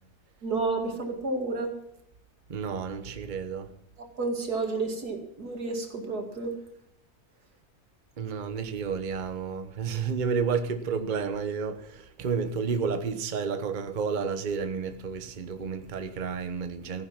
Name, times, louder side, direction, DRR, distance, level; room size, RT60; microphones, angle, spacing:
voice 1, 0.4-1.7 4.2-6.5, right 3 dB, 90° right, 2.8 m, -30 dB
voice 2, 2.5-3.7 8.2-17.1, right 5 dB, 35° right, 1.0 m, -31 dB
15.0 x 10.0 x 5.9 m
omnidirectional pair, 1.6 m